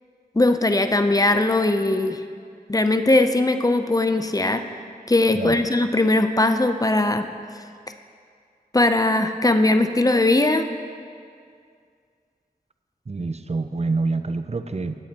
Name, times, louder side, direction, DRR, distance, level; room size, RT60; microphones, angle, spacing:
voice 1, 0.4-2.2 2.7-4.6 5.1-7.3 8.7-10.6, left 2 dB, 25° left, 8 dB, 0.6 m, -19 dB
voice 2, 13.1-15.0, right 3 dB, 45° right, 9 dB, 0.5 m, -27 dB
15.5 x 8.5 x 2.9 m, 2.2 s
wide cardioid pair, 40°, 16 cm